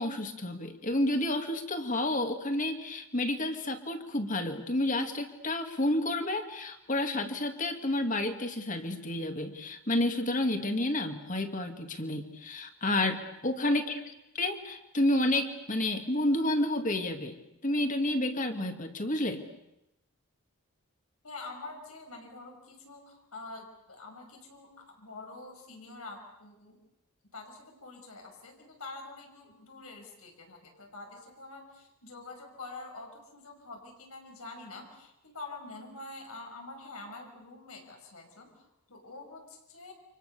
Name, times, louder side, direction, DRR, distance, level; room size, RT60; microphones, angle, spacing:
voice 1, 0.0-14.0 14.3-17.4 17.6-19.4, left 1 dB, 35° left, 6 dB, 2.3 m, -30 dB
voice 2, 21.2-26.8 27.3-39.9, left 3 dB, 90° left, 2 dB, 6.2 m, -46 dB
30.0 x 27.0 x 6.9 m, 0.84 s
head